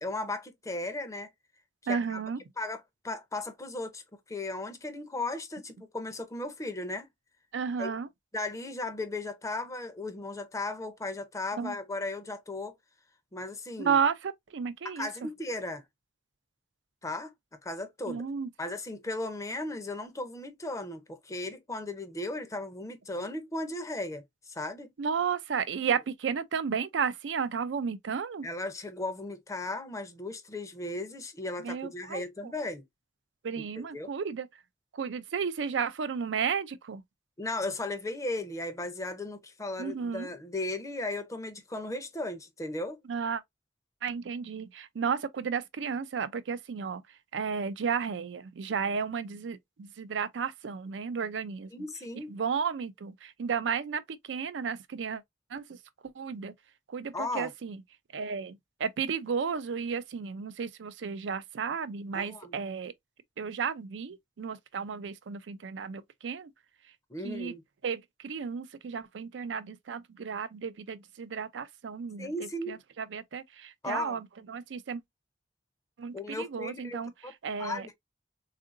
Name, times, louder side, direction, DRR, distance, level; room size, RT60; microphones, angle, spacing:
voice 1, 0.0-1.3 1.9-2.2 2.6-4.0 4.3-7.1 7.8-8.0 8.3-12.7 13.3-14.0 14.8-15.8 17.0-17.3 17.6-18.2 18.6-24.9 28.4-32.8 33.6-34.1 37.4-43.0 51.7-52.3 57.1-57.5 62.1-62.6 67.1-67.6 72.2-72.8 73.8-74.2 76.1-77.3 77.6-77.9, left 2 dB, 20° left, 0.6 m, -36 dB
voice 2, 1.9-2.4 7.5-8.1 11.6-11.8 13.8-15.1 18.1-18.5 25.0-28.5 31.6-32.5 33.4-34.5 34.9-37.0 39.8-40.3 43.1-43.4 44.0-47.0 47.3-51.7 52.3-55.2 55.5-55.8 56.2-56.5 56.9-57.8 58.1-62.9 63.4-66.5 67.2-67.5 67.8-75.0 76.0-77.9, right 6 dB, 85° right, 0.4 m, -33 dB
3.6 x 2.5 x 2.4 m
head